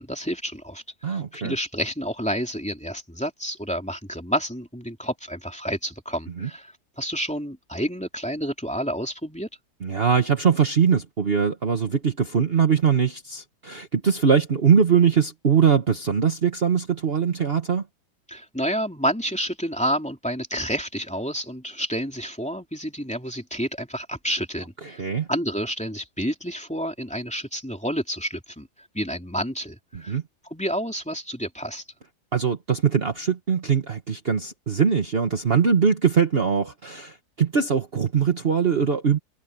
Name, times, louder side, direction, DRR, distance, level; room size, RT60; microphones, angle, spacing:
voice 1, 0.0-9.5 18.3-25.0 25.3-28.7 28.9-30.2 30.5-31.8, equal, 5° left, 3.1 m, -29 dB
voice 2, 1.0-1.5 6.4-6.5 9.8-17.8 24.8-25.3 29.9-30.2 32.3-39.2, right 6 dB, 40° right, 1.5 m, -22 dB
omnidirectional pair, 1.7 m